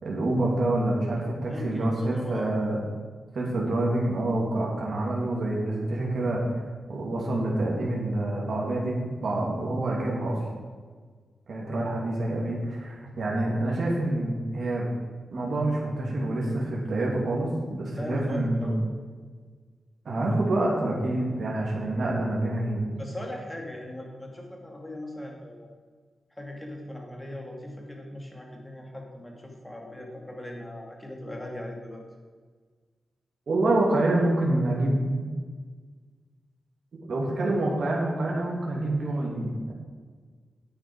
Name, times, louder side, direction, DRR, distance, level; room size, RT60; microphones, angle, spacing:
voice 1, 0.0-2.8 3.3-6.4 6.9-10.4 11.5-14.9 15.3-18.8 20.0-22.9 33.5-35.3 37.1-39.7, right 1 dB, 65° right, -3 dB, 2.6 m, -27 dB
voice 2, 1.5-2.5 17.9-18.8 23.0-25.7 26.4-32.0, left 1 dB, 15° left, 1 dB, 2.2 m, -39 dB
10.5 x 8.8 x 4.8 m, 1.5 s
wide cardioid pair, 105°, 0 cm